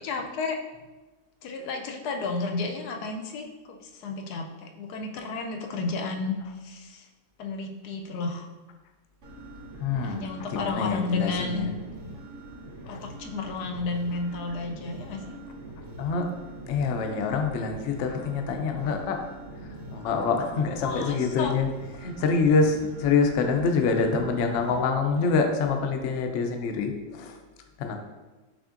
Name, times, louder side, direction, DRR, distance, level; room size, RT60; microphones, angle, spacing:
voice 1, 0.0-0.6 1.4-6.4 6.6-7.1 7.4-8.5 10.0-11.7 12.9-15.4 20.8-21.6 25.2-25.3, left 3 dB, 85° left, 3 dB, 1.1 m, -32 dB
sound 1, 9.2-24.8, right 1 dB, 55° right, 0.9 m, -43 dB
voice 2, 9.8-10.2 10.5-11.7 12.9-13.0 16.0-16.3 16.7-19.2 19.9-21.7 22.0-27.4 27.8-28.0, left 4 dB, 65° left, 4 dB, 0.7 m, -26 dB
6.0 x 3.5 x 2.5 m, 1.2 s
omnidirectional pair, 1.6 m